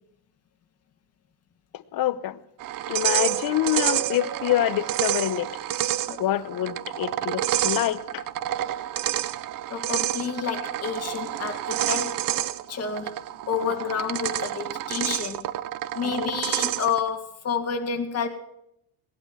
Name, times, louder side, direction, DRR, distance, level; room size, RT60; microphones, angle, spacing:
voice 1, 1.7-2.4 2.9-5.5 6.2-8.2 13.6-13.9 16.0-16.3, left 13 dB, 60° left, 14 dB, 1.0 m, -26 dB
sound 1, 2.6-17.1, right 13 dB, 55° right, 0.6 m, -29 dB
voice 2, 6.1-6.4 9.7-12.2 12.7-15.4 15.9-18.3, left 6 dB, 40° left, 5 dB, 2.1 m, -30 dB
19.0 x 11.5 x 6.0 m, 0.78 s
cardioid pair, 150°, 39 cm